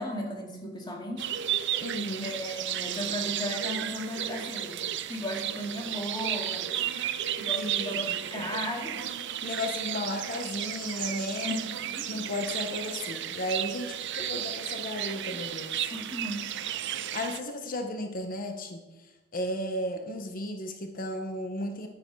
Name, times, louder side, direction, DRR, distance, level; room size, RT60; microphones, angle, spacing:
voice 1, 0.0-1.3 2.2-4.8 5.1-6.7 7.4-9.1 11.4-12.1 15.9-16.5, left 1 dB, 20° left, 0 dB, 2.2 m, -35 dB
sound 1, 1.2-17.4, right 10 dB, 60° right, 0.6 m, -33 dB
voice 2, 1.8-2.3 7.6-8.0 8.4-8.5 9.4-11.6 12.1-15.9 16.8-18.8 19.3-21.9, left 1 dB, 45° left, 5 dB, 1.0 m, -34 dB
10.5 x 9.5 x 4.7 m, 1.2 s
head